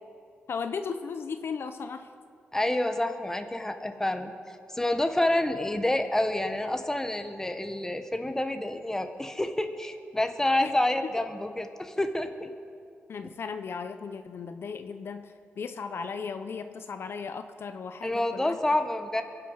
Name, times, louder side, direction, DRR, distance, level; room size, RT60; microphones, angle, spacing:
voice 1, 0.5-2.1 10.6-10.7 11.0-11.1 13.1-18.6, left 5 dB, 65° left, 8 dB, 0.7 m, -36 dB
voice 2, 2.5-4.3 4.7-12.5 18.0-19.2, left 1 dB, 10° left, 7 dB, 1.3 m, -28 dB
24.5 x 8.4 x 5.6 m, 2.5 s
cardioid pair, 80°, 4 cm